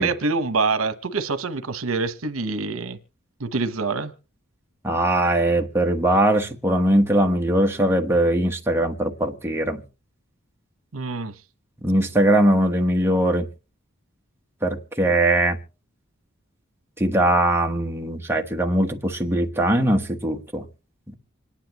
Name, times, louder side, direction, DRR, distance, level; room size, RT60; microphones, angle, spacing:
voice 1, 0.0-3.0 3.4-4.1 10.9-11.4, right 4 dB, 75° right, 1.1 m, -25 dB
voice 2, 4.8-9.8 11.8-13.5 14.6-15.6 17.0-20.6 21.1-21.2, right 1 dB, 10° right, 1.2 m, -21 dB
26.0 x 10.0 x 3.0 m
head